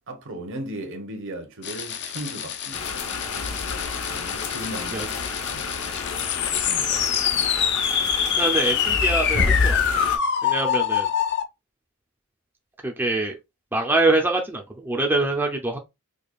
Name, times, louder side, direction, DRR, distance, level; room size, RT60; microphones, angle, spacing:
voice 1, 0.1-2.8 4.1-5.1 5.5-5.6 6.6-7.0, right 1 dB, 60° right, 0.9 m, -36 dB
sound 1, 1.6-11.4, left 8 dB, 50° left, 0.5 m, -25 dB
sound 2, 2.7-10.2, left 3 dB, 80° left, 0.9 m, -29 dB
voice 2, 4.9-5.4 6.9-7.0 8.4-10.1 10.4-11.1 12.8-13.4 13.7-15.8, right 2 dB, 10° right, 0.5 m, -25 dB
5.0 x 2.3 x 2.3 m
head